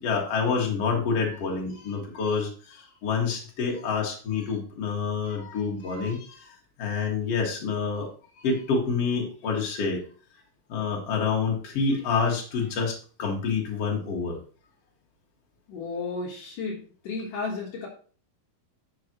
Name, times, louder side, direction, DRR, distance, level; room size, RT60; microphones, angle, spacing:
voice 1, 0.0-8.1 8.4-10.0 10.7-14.4, left 5 dB, 45° left, -1 dB, 2.9 m, -28 dB
voice 2, 15.7-17.9, left 4 dB, 65° left, -1 dB, 3.1 m, -33 dB
10.5 x 7.3 x 3.1 m, 0.41 s
omnidirectional pair, 4.1 m